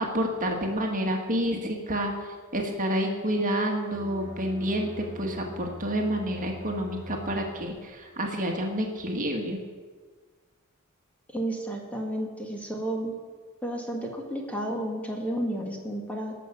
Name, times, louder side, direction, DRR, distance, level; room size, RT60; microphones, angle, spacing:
voice 1, 0.0-2.1 2.5-9.6, equal, 40° right, 2 dB, 1.8 m, -29 dB
Bowed string instrument, 3.8-7.9, equal, 20° right, 5.4 m, -42 dB
voice 2, 11.3-13.2 13.6-16.3, right 1 dB, 5° left, 0 dB, 1.8 m, -32 dB
19.0 x 6.6 x 7.2 m, 1.5 s
head